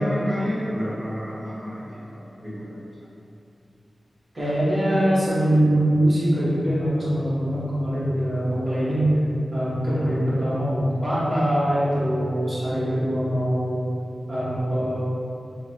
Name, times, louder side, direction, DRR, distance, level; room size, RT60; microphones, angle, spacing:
voice 1, 0.0-3.0, equal, ahead, -17 dB, 1.4 m, -30 dB
voice 2, 4.3-9.1 9.5-13.9 14.3-15.0, right 1 dB, 35° right, -10 dB, 1.2 m, -23 dB
3.7 x 2.2 x 3.0 m, 2.6 s
wide cardioid pair, 90°, 0 cm